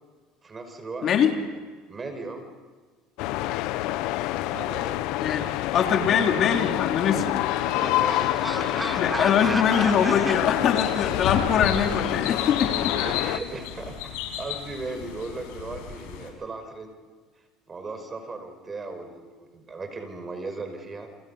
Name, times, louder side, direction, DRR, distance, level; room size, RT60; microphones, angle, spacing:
voice 1, 0.4-1.3 1.9-2.5 4.5-5.1 7.1-8.9 13.0-16.9 17.7-21.1, right 3 dB, 25° right, 6 dB, 4.9 m, -37 dB
sound 1, 3.2-13.4, left 15 dB, 70° left, 0.9 m, -27 dB
voice 2, 5.7-7.2 9.0-13.0, left 7 dB, 45° left, 3 dB, 3.2 m, -23 dB
sound 2, 6.6-10.4, right 1 dB, 5° right, 1.4 m, -33 dB
sound 3, 10.1-16.3, left 9 dB, 90° left, 6.0 m, -33 dB
29.5 x 26.5 x 5.6 m, 1.4 s
cardioid pair, 130°, 0 cm